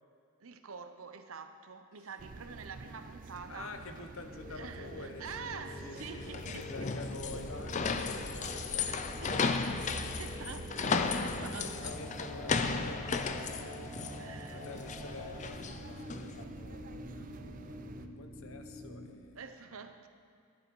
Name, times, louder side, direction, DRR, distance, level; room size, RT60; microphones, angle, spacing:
voice 1, 0.4-3.7 4.5-6.7 7.4-7.5 8.0-8.2 8.5-9.6 10.0-11.9 14.1-14.7 15.9-16.0 19.4-20.1, right 5 dB, 65° right, 8 dB, 0.7 m, -47 dB
sound 1, 2.2-18.1, right 3 dB, 35° right, 0.4 m, -47 dB
voice 2, 3.5-9.4 10.9-13.9 14.5-19.4, left 3 dB, 65° left, 6 dB, 0.9 m, -48 dB
sound 2, 4.3-19.1, left 1 dB, 10° left, 1.2 m, -48 dB
sound 3, 6.0-16.4, left 4 dB, 35° left, 0.4 m, -35 dB
12.5 x 11.0 x 4.6 m, 2.3 s
head